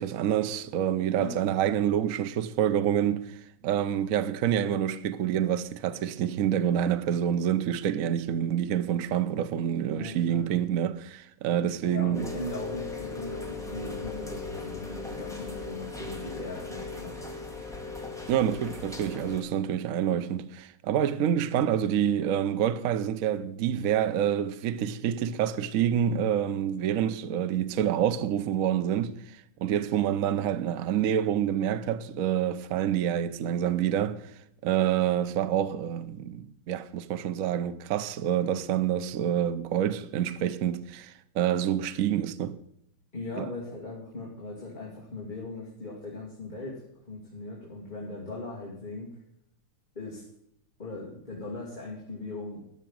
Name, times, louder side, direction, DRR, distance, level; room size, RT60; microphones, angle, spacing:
voice 1, 0.0-3.4 3.6-12.2 18.3-34.3 34.6-42.6 43.4-43.5, right 10 dB, 70° right, 0.8 m, -27 dB
voice 2, 9.9-10.5 11.8-17.2 43.1-46.8 47.1-49.1 49.9-50.2 50.8-52.6, left 2 dB, 20° left, 2.5 m, -39 dB
Rain, 12.1-19.4, left 3 dB, ahead, 1.9 m, -38 dB
13.0 x 6.1 x 9.0 m
omnidirectional pair, 2.4 m